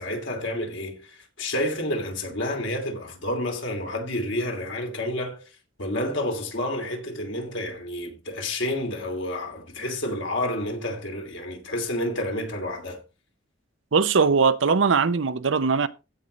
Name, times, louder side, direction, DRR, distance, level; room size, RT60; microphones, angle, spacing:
voice 1, 0.0-5.5 5.8-13.0, left 1 dB, 70° left, 2.8 m, -29 dB
voice 2, 13.9-15.9, right 5 dB, 80° right, 0.7 m, -20 dB
15.5 x 5.3 x 3.2 m
head